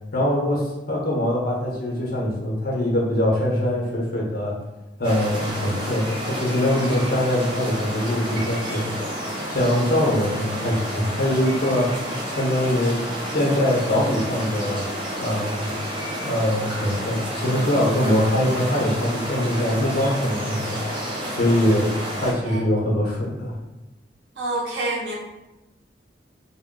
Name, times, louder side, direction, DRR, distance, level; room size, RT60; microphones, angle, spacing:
voice 1, 0.1-4.5 5.0-8.9 9.5-11.9 12.4-13.0 13.3-14.8 15.2-15.7 16.2-20.8 21.3-21.9 22.2-23.6, left 1 dB, 55° left, -3 dB, 0.7 m, -23 dB
sound 1, 5.0-22.3, equal, 30° right, 0.5 m, -30 dB
voice 2, 24.4-25.2, right 2 dB, 85° right, -2 dB, 0.7 m, -27 dB
2.2 x 2.1 x 3.6 m, 1.0 s
head